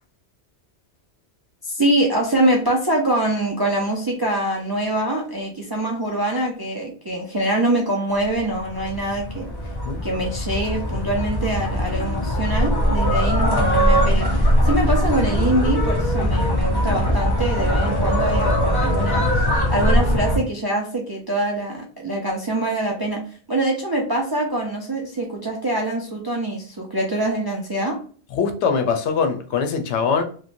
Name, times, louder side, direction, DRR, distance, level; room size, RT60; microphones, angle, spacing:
voice 1, 1.6-9.5 10.0-23.2 23.5-28.0, right 1 dB, 40° right, -1 dB, 0.3 m, -24 dB
sound 1, 8.3-20.4, equal, 25° left, 0.6 m, -21 dB
voice 2, 28.3-30.2, left 5 dB, 85° left, 7 dB, 0.9 m, -22 dB
3.0 x 2.2 x 2.5 m, 0.44 s
omnidirectional pair, 1.2 m